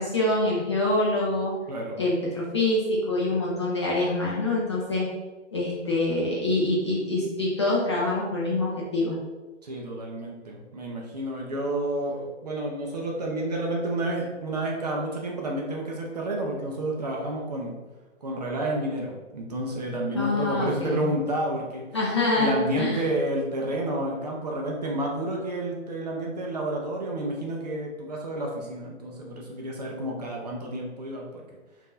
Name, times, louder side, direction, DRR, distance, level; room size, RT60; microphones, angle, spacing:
voice 1, 0.0-1.5 2.0-5.1 5.5-9.2 20.1-21.0 21.9-23.1, left 2 dB, 25° left, -5 dB, 0.5 m, -25 dB
voice 2, 1.7-2.0 9.6-17.8 18.2-21.8 22.4-31.5, right 1 dB, 35° right, -1 dB, 0.5 m, -30 dB
5.1 x 2.6 x 2.5 m, 1.2 s
figure-of-eight pair, 125°, 37 cm